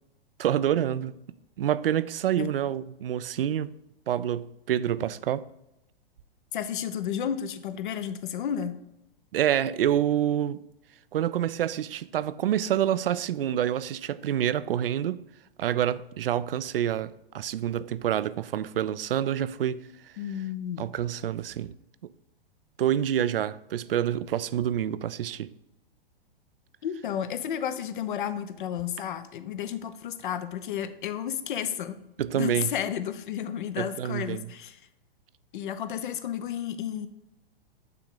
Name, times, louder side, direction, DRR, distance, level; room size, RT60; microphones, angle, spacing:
voice 1, 0.4-1.2 1.6-3.7 4.1-5.4 9.3-10.6 11.1-15.2 15.6-20.1 20.8-21.7 22.8-25.5 32.2-32.8 33.8-34.5, right 10 dB, 70° right, 0.5 m, -27 dB
voice 2, 6.5-8.8 20.2-20.9 26.8-32.0 32.3-34.8 35.5-37.1, left 9 dB, 55° left, 0.7 m, -32 dB
9.0 x 3.8 x 3.7 m
figure-of-eight pair, 110°, 29 cm